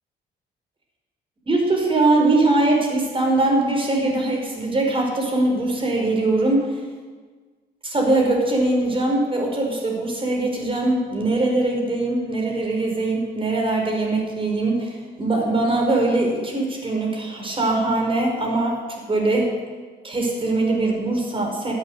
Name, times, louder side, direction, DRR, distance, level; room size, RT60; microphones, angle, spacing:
voice 1, 1.5-6.8 7.8-18.8 19.1-19.6 20.0-21.7, right 2 dB, 25° right, 0 dB, 5.3 m, -21 dB
13.5 x 8.9 x 9.5 m, 1.4 s
cardioid pair, 90°, 20 cm